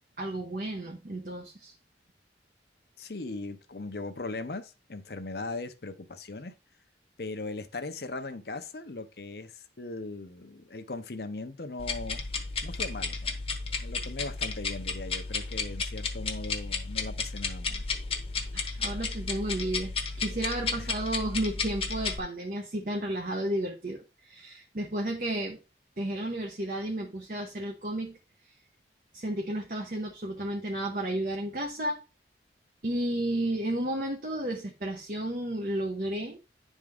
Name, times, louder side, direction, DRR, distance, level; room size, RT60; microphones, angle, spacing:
voice 1, 0.2-1.7 18.5-25.6 26.0-28.2 29.1-32.0 32.8-36.4, right 1 dB, 50° right, 0.9 m, -32 dB
voice 2, 3.0-6.5 7.2-12.2 12.6-13.3 13.8-17.8 20.8-20.9, left 3 dB, 60° left, 0.8 m, -39 dB
sound 1, 11.8-22.2, left 4 dB, 30° left, 1.0 m, -33 dB
10.5 x 3.7 x 3.5 m
head